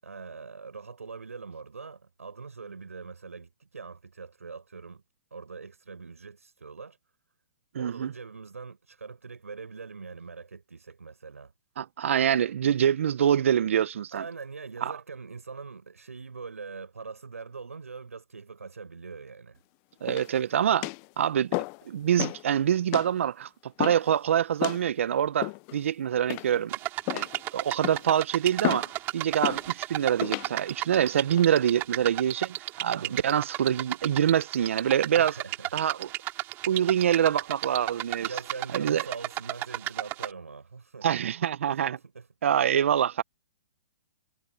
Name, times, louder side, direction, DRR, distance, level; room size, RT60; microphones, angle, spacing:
voice 1, 0.0-5.0 5.3-7.0 7.7-11.5 14.1-19.6 33.0-33.3 35.1-35.9 38.2-41.1 41.7-42.3, right 4 dB, 90° right, 6.6 m, -42 dB
voice 2, 7.7-8.1 11.8-14.2 14.8-14.9 20.0-20.9 21.2-21.6 21.9-26.7 27.1-35.4 35.7-36.1 36.7-38.3 38.7-39.0 41.0-42.0 42.4-43.2, right 9 dB, 65° right, 1.3 m, -25 dB
sound 1, 20.1-20.4 20.8-21.1 21.5-21.8 22.2-22.4 22.9-23.1 23.8-24.1 24.6-24.8 25.4-25.8 26.3-26.7 27.1-27.4 27.8-28.1 28.6-28.9 29.4-29.7 30.2-30.5 31.1-31.4, left 30 dB, 35° left, 0.7 m, -32 dB
sound 2, 26.7-40.3, right 17 dB, 30° right, 3.8 m, -34 dB
hypercardioid pair, 130°, 8 cm